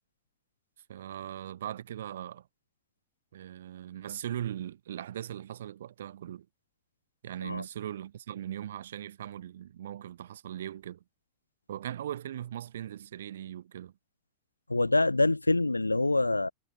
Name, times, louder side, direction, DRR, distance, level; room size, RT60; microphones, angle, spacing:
voice 1, 0.9-2.5 3.3-6.5 7.2-11.0 11.7-13.9, right 11 dB, 60° right, 1.2 m, -39 dB
voice 2, 14.7-16.5, left 2 dB, 85° left, 0.8 m, -25 dB
figure-of-eight pair, 90°, 0 cm